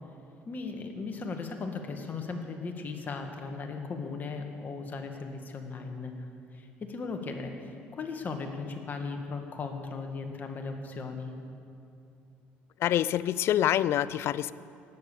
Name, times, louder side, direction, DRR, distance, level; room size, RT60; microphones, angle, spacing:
voice 1, 0.4-6.3 6.5-11.3, left 4 dB, 40° left, 4 dB, 1.6 m, -37 dB
voice 2, 12.8-14.5, left 11 dB, 65° left, 18 dB, 0.4 m, -26 dB
18.0 x 7.2 x 6.9 m, 2.5 s
supercardioid pair, 85°, 5 cm